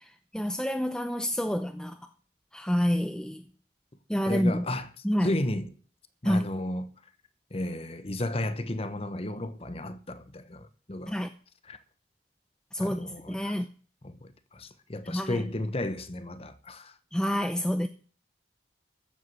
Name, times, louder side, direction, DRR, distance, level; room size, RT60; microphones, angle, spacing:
voice 1, 0.3-1.9 2.5-3.4 4.1-4.6 5.0-5.3 6.2-6.4 11.1-11.3 12.7-13.6 15.1-15.4 17.1-17.9, equal, 5° left, 0.6 m, -28 dB
voice 2, 4.3-4.9 5.2-5.7 6.2-6.9 7.5-11.2 11.6-11.8 12.8-13.6 14.0-16.9, left 1 dB, 30° left, 1.1 m, -33 dB
14.0 x 8.1 x 7.6 m
head